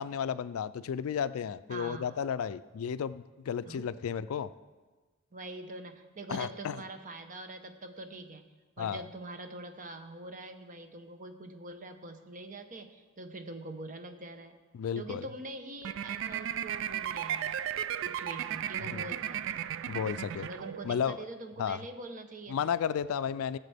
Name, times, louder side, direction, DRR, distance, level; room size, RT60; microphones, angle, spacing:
voice 1, 0.0-4.5 6.3-6.8 8.8-9.0 14.7-15.3 18.8-19.0 19.9-20.5 20.8-21.2 21.6-21.8 22.5-23.6, left 7 dB, 85° left, 16 dB, 0.3 m, -33 dB
voice 2, 1.7-2.1 3.7-3.9 5.3-8.5 8.8-14.6 15.0-17.5 18.0-19.6 20.4-22.7, right 2 dB, 40° right, 7 dB, 0.8 m, -44 dB
sound 1, 15.8-21.1, right 10 dB, 65° right, 0.4 m, -35 dB
17.0 x 7.4 x 3.5 m, 1.3 s
head